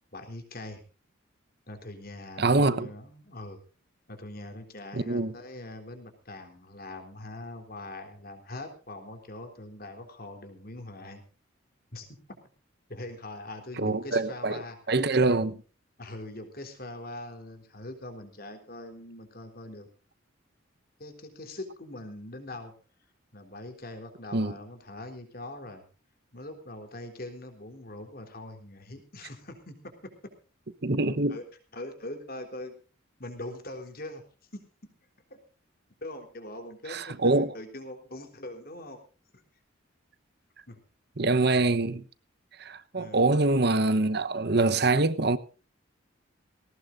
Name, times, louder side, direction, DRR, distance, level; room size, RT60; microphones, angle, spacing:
voice 1, 0.1-0.8 1.7-3.6 4.1-11.2 11.9-12.1 12.9-14.8 16.0-19.9 21.0-22.7 23.3-25.8 26.3-30.1 31.3-31.4 31.7-32.7 33.2-34.2 34.5-34.6 35.3-35.4 36.0-39.0 39.3-39.4 40.7-40.8 43.0-43.4, left 1 dB, 50° left, 3.6 m, -42 dB
voice 2, 2.4-2.9 4.9-5.3 13.8-15.6 24.3-24.6 30.8-31.4 36.9-37.5 41.2-42.1 42.6-45.4, right 2 dB, 55° right, 1.0 m, -25 dB
19.5 x 18.0 x 2.6 m
head